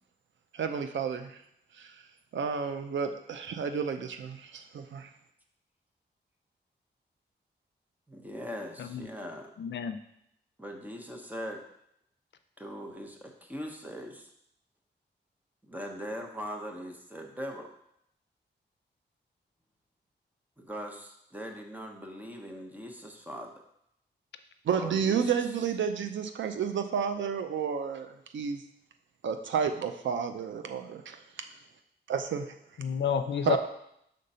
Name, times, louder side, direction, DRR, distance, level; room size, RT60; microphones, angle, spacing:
voice 1, 0.5-1.4 1.7-2.0 2.3-5.1 24.6-28.6 29.2-31.2 32.1-32.5 33.4-33.6, right 7 dB, 85° right, 7 dB, 0.6 m, -31 dB
voice 2, 8.1-9.5 10.6-11.6 12.6-14.3 15.6-17.7 20.6-23.5 24.7-25.3, equal, 10° right, 2 dB, 1.0 m, -40 dB
voice 3, 9.6-10.0 32.8-33.6, left 7 dB, 75° left, 9 dB, 0.5 m, -30 dB
5.2 x 3.9 x 5.5 m, 0.76 s
cardioid pair, 85°, 19 cm